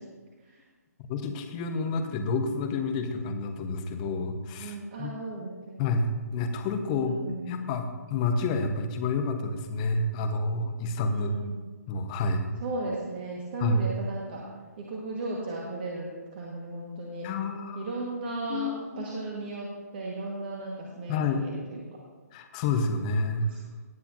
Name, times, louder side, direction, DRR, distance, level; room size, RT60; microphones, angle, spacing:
voice 1, 1.1-5.1 5.8-7.2 7.5-11.3 11.9-12.5 13.6-13.8 17.2-17.9 18.5-19.0 21.1-21.4 22.3-23.5, left 3 dB, 25° left, 6 dB, 1.0 m, -29 dB
voice 2, 4.6-5.8 6.9-7.5 11.1-11.6 12.6-14.5 14.8-17.3 17.7-21.8 23.4-23.8, right 2 dB, 35° right, -2 dB, 1.4 m, -36 dB
18.5 x 8.3 x 2.6 m, 1.3 s
figure-of-eight pair, 135°, 9 cm